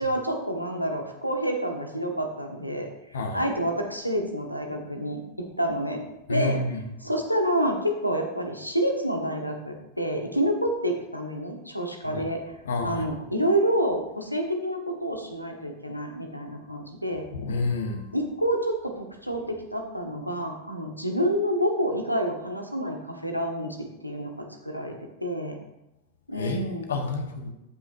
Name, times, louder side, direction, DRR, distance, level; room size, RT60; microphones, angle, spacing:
voice 1, 0.0-2.9 3.3-6.0 6.3-6.6 7.0-12.5 12.8-17.2 18.1-25.6 26.3-26.9, equal, 90° left, 4 dB, 1.1 m, -28 dB
voice 2, 6.3-6.8 12.1-12.3 12.7-13.1 17.3-18.1 26.3-27.5, left 3 dB, 65° left, 5 dB, 1.0 m, -29 dB
14.0 x 5.9 x 2.6 m, 0.91 s
figure-of-eight pair, 90°, 0 cm